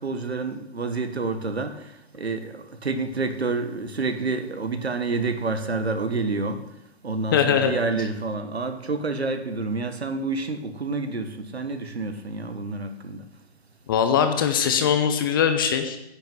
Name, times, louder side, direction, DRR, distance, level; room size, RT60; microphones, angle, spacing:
voice 1, 0.0-1.7 2.2-6.6 7.0-13.2, right 3 dB, 70° right, 1.4 m, -28 dB
voice 2, 7.3-7.7 13.9-16.0, left 8 dB, 20° left, 0.6 m, -21 dB
10.0 x 6.5 x 7.9 m
figure-of-eight pair, 130°, 33 cm